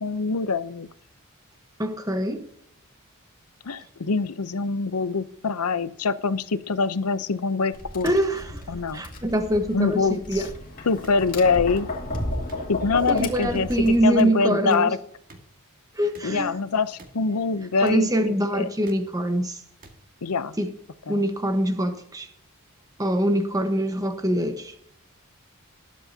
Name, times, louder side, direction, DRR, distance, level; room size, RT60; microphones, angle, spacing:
voice 1, 0.0-0.9 3.6-8.1 8.7-9.0 9.7-10.4 10.9-11.9 12.7-15.0 16.2-18.7 20.2-20.5 21.1-21.2 23.3-23.4, left 4 dB, 85° left, 0.7 m, -24 dB
voice 2, 1.8-2.4 8.0-8.6 8.9-10.5 13.1-14.9 15.9-16.5 17.8-19.6 20.6-20.7 21.1-22.3 23.0-24.8, right 1 dB, 15° right, 1.1 m, -24 dB
Tap, 7.7-14.0, left 1 dB, 40° left, 2.2 m, -33 dB
sound 1, 9.3-9.4 10.3-10.5 11.0-11.1 11.8-11.9 12.5-12.6 13.2-13.3 13.7-13.8 14.2-14.3 14.7-14.8 15.3-15.4 16.1-16.3 17.0-17.1 17.8-18.0 18.9-19.0 19.8-19.9 20.8-20.9, right 2 dB, 40° right, 1.9 m, -48 dB
20.0 x 8.4 x 2.8 m
head